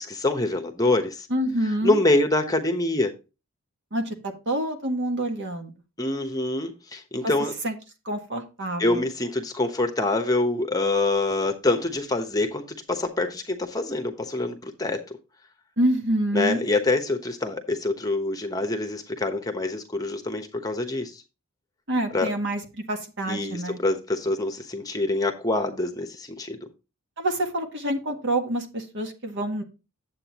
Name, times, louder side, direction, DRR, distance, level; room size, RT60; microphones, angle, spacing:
voice 1, 0.0-1.3 1.8-3.1 6.0-7.5 8.8-15.2 16.3-21.2 22.1-22.3 23.3-26.6, left 2 dB, 15° left, 1.0 m, -25 dB
voice 2, 1.3-2.0 3.9-5.7 7.6-7.8 8.0-9.0 15.8-16.6 21.9-23.8 27.2-29.6, right 1 dB, 55° right, 1.8 m, -27 dB
9.8 x 7.9 x 2.9 m
head